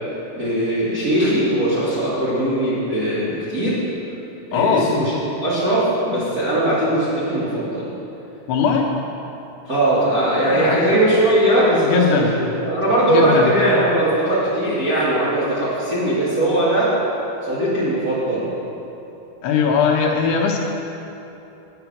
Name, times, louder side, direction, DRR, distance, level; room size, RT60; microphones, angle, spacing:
voice 1, 0.3-3.8 4.5-5.1 5.4-7.8 9.7-16.9 17.4-18.5, right 1 dB, 45° right, -10 dB, 1.2 m, -19 dB
voice 2, 4.5-4.9 8.5-8.9 10.5-10.8 11.8-12.3 13.1-13.5 19.4-20.6, left 6 dB, 85° left, -1 dB, 2.9 m, -19 dB
9.6 x 7.7 x 5.9 m, 2.9 s
omnidirectional pair, 4.6 m